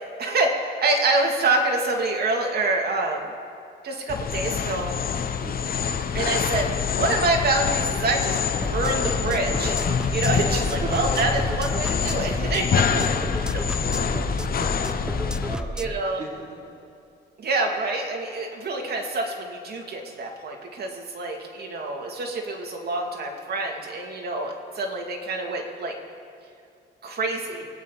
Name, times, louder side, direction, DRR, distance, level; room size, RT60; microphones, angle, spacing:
voice 1, 0.2-3.2 3.8-4.9 6.1-6.7 7.0-8.4 8.6-9.8 10.1-12.7 15.8-16.2 17.4-25.9 27.0-27.6, right 2 dB, 55° right, 1 dB, 2.5 m, -26 dB
sound 1, 4.1-15.5, left 7 dB, 50° left, 0.9 m, -26 dB
voice 2, 5.4-5.7 10.8-11.3 12.9-15.8 16.2-16.8, right 1 dB, 35° right, -5 dB, 3.3 m, -38 dB
sound 2, 8.6-16.0, right 1 dB, 5° right, 0.3 m, -32 dB
24.5 x 9.1 x 4.0 m, 2.5 s
cardioid pair, 90°, 20 cm